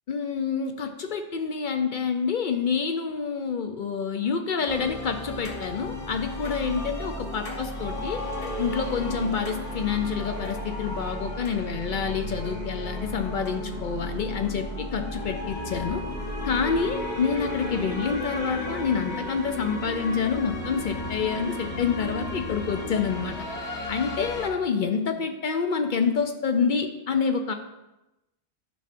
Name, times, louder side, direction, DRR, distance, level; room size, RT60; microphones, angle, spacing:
voice 1, 0.1-8.2 8.6-16.0 16.4-23.4 23.9-27.5, left 6 dB, 60° left, 6 dB, 0.6 m, -27 dB
sound 1, 4.7-24.5, left 1 dB, 35° left, 1.0 m, -34 dB
10.0 x 5.6 x 2.5 m, 0.99 s
omnidirectional pair, 1.1 m